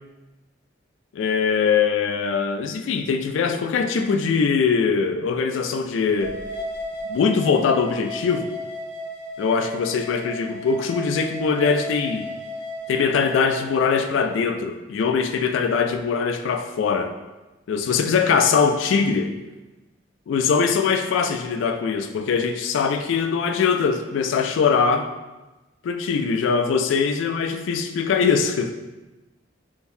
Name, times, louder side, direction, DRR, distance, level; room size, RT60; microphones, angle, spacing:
voice 1, 1.1-6.4 7.1-8.5 9.4-12.3 12.9-17.1 17.7-19.3 20.3-25.1 25.8-28.7, left 5 dB, 80° left, 7 dB, 0.3 m, -22 dB
sound 1, 6.2-13.9, equal, 45° right, 0.9 m, -34 dB
3.8 x 2.6 x 2.7 m, 1.1 s
head